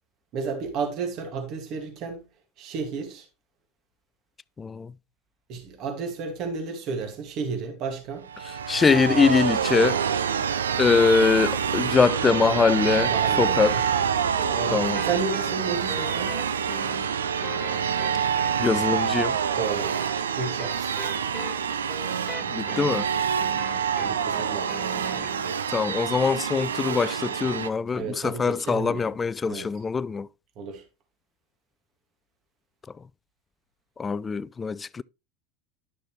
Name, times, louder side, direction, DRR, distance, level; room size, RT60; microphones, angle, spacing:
voice 1, 0.3-2.2 2.6-3.3 5.5-8.3 13.1-13.8 14.5-16.3 19.6-19.9 20.4-21.4 24.0-25.3 27.9-29.1 29.5-29.7 30.6-30.8, right 4 dB, 50° right, 2.4 m, -32 dB
voice 2, 4.6-4.9 8.7-10.0 10.8-13.1 13.4-13.7 14.7-15.0 18.6-19.4 22.5-23.1 25.7-30.3 34.0-35.0, left 5 dB, 20° left, 0.4 m, -23 dB
sound 1, 8.3-27.7, right 7 dB, 85° right, 0.6 m, -27 dB
sound 2, 13.6-25.6, left 1 dB, 5° left, 2.0 m, -41 dB
11.5 x 6.4 x 3.3 m
hypercardioid pair, 85°, 0 cm